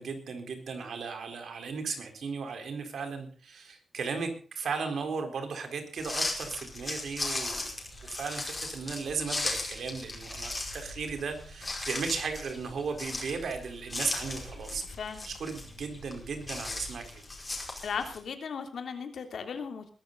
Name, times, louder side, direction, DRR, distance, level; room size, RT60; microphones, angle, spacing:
voice 1, 0.0-7.7 8.0-14.8 15.2-17.2, right 5 dB, 70° right, 6 dB, 4.1 m, -36 dB
sound 1, 6.0-18.2, left 2 dB, 20° left, 5.1 m, -37 dB
voice 2, 17.8-19.9, left 6 dB, 65° left, 6 dB, 3.1 m, -36 dB
21.0 x 13.0 x 4.0 m, 0.39 s
wide cardioid pair, 155°, 0 cm